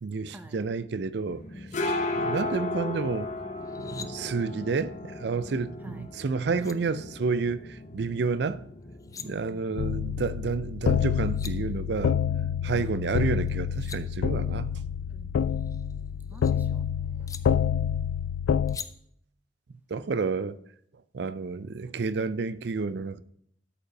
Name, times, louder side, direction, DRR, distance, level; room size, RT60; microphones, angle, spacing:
voice 1, 0.0-3.3 3.8-8.7 9.2-12.2 12.6-14.7 19.9-20.6 21.1-23.2, right 4 dB, 65° right, 0.4 m, -30 dB
sound 1, 1.3-18.8, left 2 dB, 40° left, 1.0 m, -38 dB
sound 2, 3.6-4.1 6.1-6.2 6.6-6.8 8.8-9.3 10.9-11.0 11.2-11.5 13.5-14.0 15.5-16.5 17.3-17.4 18.7-18.9, left 6 dB, 20° left, 0.4 m, -42 dB
voice 2, 9.2-9.9 12.7-12.9 15.1-15.8 16.3-17.5, right 1 dB, 10° right, 0.7 m, -50 dB
sound 3, 9.8-18.8, left 8 dB, 90° left, 0.3 m, -28 dB
8.4 x 5.3 x 6.4 m
head